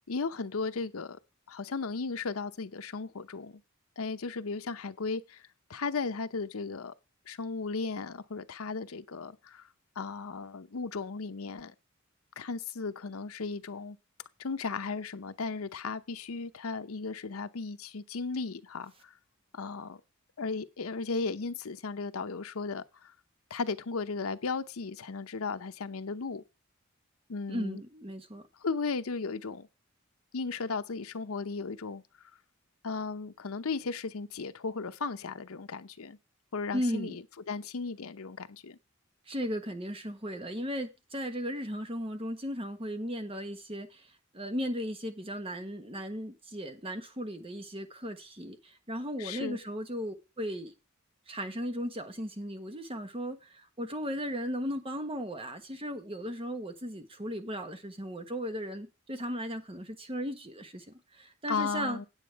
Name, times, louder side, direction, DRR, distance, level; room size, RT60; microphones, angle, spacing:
voice 1, 0.1-1.2 1.5-3.6 4.0-6.9 7.3-9.6 10.0-11.7 12.4-14.0 14.4-19.1 19.5-20.0 20.4-23.1 23.5-26.4 27.3-27.8 28.6-29.7 30.3-32.0 32.8-36.2 36.5-38.8 49.2-49.6 61.5-62.1, left 4 dB, 85° left, 0.7 m, -35 dB
voice 2, 27.5-28.4 36.7-37.2 39.3-44.1 44.3-50.7 51.3-53.5 53.8-62.0, equal, 25° right, 1.3 m, -36 dB
9.0 x 8.4 x 4.6 m
head